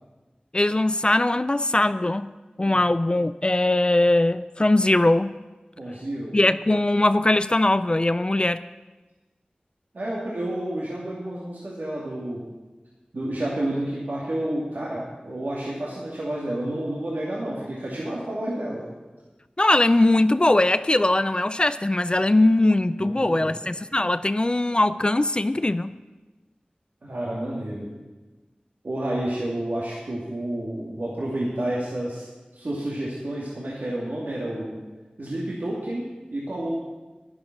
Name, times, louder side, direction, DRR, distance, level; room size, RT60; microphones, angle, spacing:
voice 1, 0.5-2.3 2.6-5.4 6.3-8.6 19.6-26.0, left 2 dB, 35° left, 13 dB, 0.4 m, -21 dB
voice 2, 5.8-6.4 9.9-12.4 13.1-18.8 23.0-23.6 27.0-27.9 28.8-32.3 32.5-34.8 35.2-36.0 36.3-36.7, right 1 dB, 80° right, -6 dB, 2.6 m, -30 dB
11.5 x 11.0 x 6.1 m, 1.2 s
wide cardioid pair, 60°, 3 cm